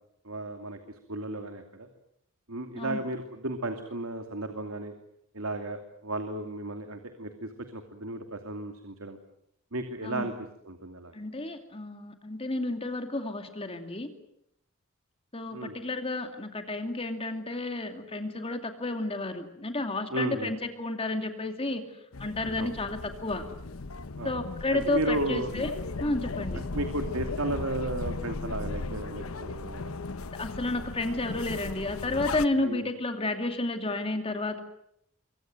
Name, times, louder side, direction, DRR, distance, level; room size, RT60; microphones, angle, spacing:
voice 1, 0.2-1.9 2.5-4.9 5.3-9.2 9.7-10.3 10.6-11.1 15.5-15.8 20.1-20.5 22.6-22.7 24.2-24.3 24.7-25.5 26.7-30.0 32.6-32.9, right 1 dB, 85° right, 6 dB, 2.6 m, -34 dB
voice 2, 11.1-14.1 15.3-21.8 22.2-23.4 24.2-25.7 26.0-26.6 30.3-34.6, left 2 dB, 30° left, 6 dB, 2.6 m, -31 dB
sound 1, 22.1-32.5, left 3 dB, 85° left, 1.0 m, -37 dB
26.5 x 24.0 x 7.9 m, 0.76 s
head